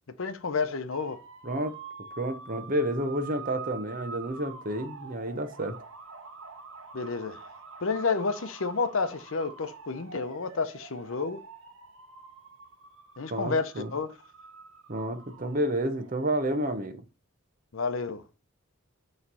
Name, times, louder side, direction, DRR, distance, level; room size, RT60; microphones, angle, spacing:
voice 1, 0.2-1.2 6.9-7.4 7.8-11.4 13.2-14.1 17.7-18.2, left 4 dB, 60° left, 0.7 m, -30 dB
sound 1, 0.9-16.4, right 5 dB, 65° right, 1.1 m, -46 dB
voice 2, 1.4-1.8 2.2-5.8 13.3-13.9 14.9-17.0, right 1 dB, 40° right, 0.8 m, -30 dB
8.6 x 3.2 x 5.4 m
head